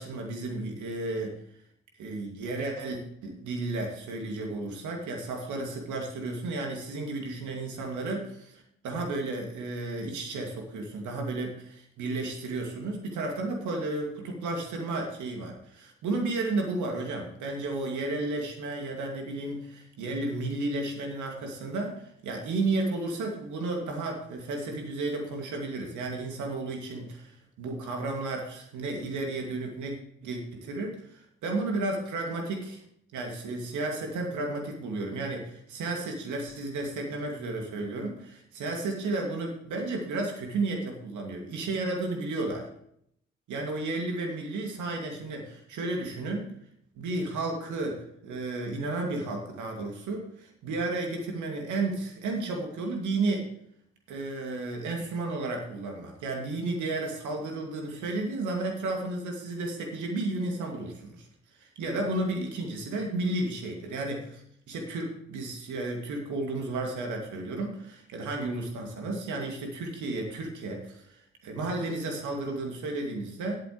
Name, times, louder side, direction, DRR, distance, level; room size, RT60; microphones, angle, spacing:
voice 1, 0.0-1.3 2.0-30.0 30.2-32.8 33.1-42.7 43.5-46.5 47.0-53.5 54.1-61.3 61.6-73.6, right 2 dB, 60° right, 2 dB, 2.5 m, -33 dB
17.0 x 8.5 x 3.2 m, 0.71 s
figure-of-eight pair, 40°, 33 cm